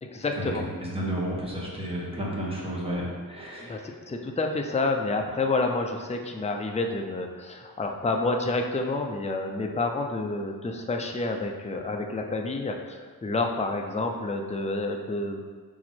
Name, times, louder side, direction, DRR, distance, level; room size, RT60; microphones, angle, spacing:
voice 1, 0.0-0.6 3.6-15.4, left 2 dB, 20° left, 3 dB, 0.5 m, -29 dB
voice 2, 0.8-3.8, equal, 15° right, -5 dB, 1.6 m, -32 dB
5.2 x 4.7 x 4.4 m, 1.5 s
wide cardioid pair, 105°, 37 cm